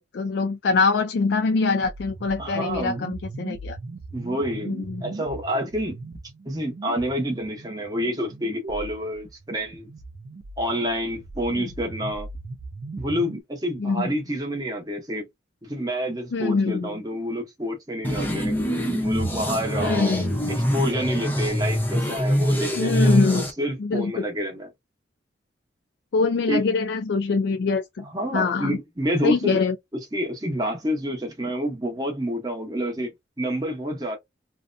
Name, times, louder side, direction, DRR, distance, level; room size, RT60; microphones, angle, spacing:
voice 1, 0.0-3.8 4.7-5.0 13.8-14.1 16.3-17.0 19.8-20.5 22.8-23.5 23.8-24.2 26.1-28.0 28.3-28.8 29.2-29.7, left 4 dB, 65° left, 0.3 m, -24 dB
sound 1, 1.8-13.4, right 3 dB, 50° right, 0.4 m, -39 dB
voice 2, 2.4-3.0 4.1-4.8 5.0-6.0 6.4-9.9 10.6-12.3 13.0-15.2 15.6-18.5 19.0-20.2 20.5-24.7 26.5-26.6 28.0-29.6 30.1-33.1 33.4-34.2, equal, 20° right, 0.8 m, -28 dB
sound 2, 18.0-23.5, equal, 10° left, 0.6 m, -24 dB
2.6 x 2.0 x 2.5 m
head